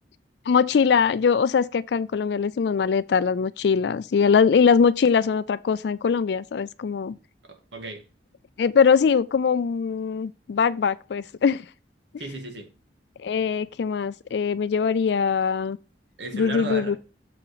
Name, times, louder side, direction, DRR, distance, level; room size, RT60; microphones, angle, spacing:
voice 1, 0.5-7.2 8.6-11.6 13.2-15.8 16.3-17.0, left 6 dB, 70° left, 0.4 m, -22 dB
voice 2, 7.4-8.0 12.2-12.7 16.2-17.0, right 2 dB, 85° right, 1.8 m, -35 dB
7.0 x 5.7 x 4.0 m
head